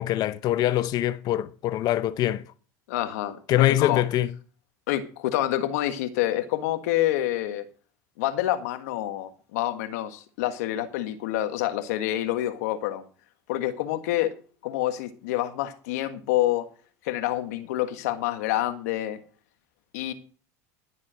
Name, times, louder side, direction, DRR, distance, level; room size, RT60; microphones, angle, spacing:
voice 1, 0.0-2.4 3.5-4.3, left 13 dB, 50° left, 0.7 m, -23 dB
voice 2, 2.9-4.0 4.9-7.6 8.2-13.0 13.5-14.3 14.6-16.7 17.0-19.2 19.9-20.1, left 14 dB, 80° left, 1.5 m, -27 dB
12.0 x 7.4 x 6.3 m
supercardioid pair, 100°, 8 cm